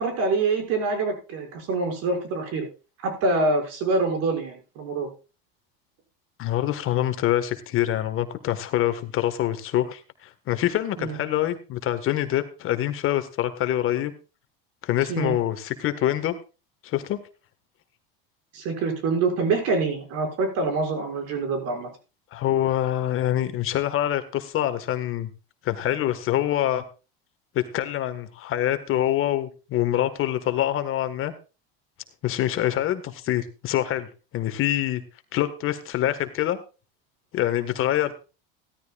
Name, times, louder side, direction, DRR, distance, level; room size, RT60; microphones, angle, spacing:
voice 1, 0.0-2.7 3.0-5.1 11.0-11.2 15.1-15.3 18.5-21.9, right 3 dB, 55° right, 3 dB, 6.0 m, -25 dB
voice 2, 6.4-14.1 14.8-16.4 16.8-17.2 22.3-25.3 25.6-26.8 27.5-31.3 32.2-34.1 34.3-35.0 35.3-36.6 37.3-38.1, left 12 dB, 45° left, 10 dB, 1.6 m, -25 dB
16.5 x 13.5 x 2.4 m, 0.31 s
supercardioid pair, 110°, 29 cm